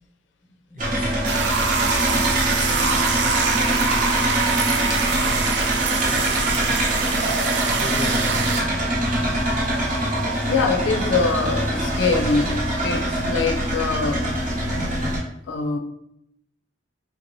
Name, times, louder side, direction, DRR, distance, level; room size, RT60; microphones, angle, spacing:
voice 1, 0.7-1.2 5.9-7.4 7.6-8.7, left 1 dB, 10° left, 0.9 m, -37 dB
sound 1, 0.8-15.2, right 1 dB, 45° right, 0.8 m, -24 dB
sound 2, 1.3-8.6, right 5 dB, 65° right, 0.4 m, -24 dB
voice 2, 10.5-14.4 15.5-15.8, left 4 dB, 75° left, 0.4 m, -23 dB
3.5 x 2.6 x 3.0 m
head